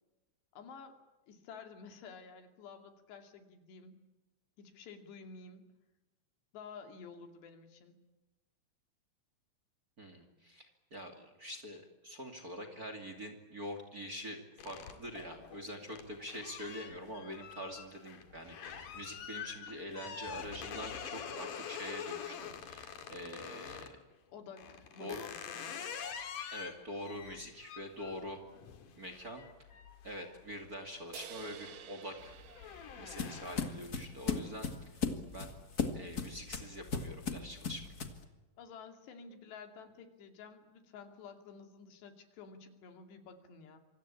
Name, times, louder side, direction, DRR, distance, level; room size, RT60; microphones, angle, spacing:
voice 1, 0.5-1.0 1.3-4.0 4.6-5.7 6.5-8.0 24.3-25.8 38.6-43.8, left 5 dB, 85° left, 6 dB, 4.7 m, -51 dB
voice 2, 10.0-24.0 25.0-25.3 26.5-28.4 29.0-29.5 30.0-32.4 33.0-34.9 35.3-35.5 35.9-37.9, equal, 25° right, 6 dB, 2.5 m, -45 dB
sound 1, 14.6-24.0 24.6-31.0 31.4-31.8 32.1-33.9, left 7 dB, 55° left, 3.4 m, -46 dB
sound 2, 31.1-34.6, right 9 dB, 80° right, 4.1 m, -52 dB
sound 3, 32.2-38.2, left 5 dB, 35° left, 1.5 m, -38 dB
27.0 x 25.0 x 8.6 m, 1.1 s
omnidirectional pair, 4.8 m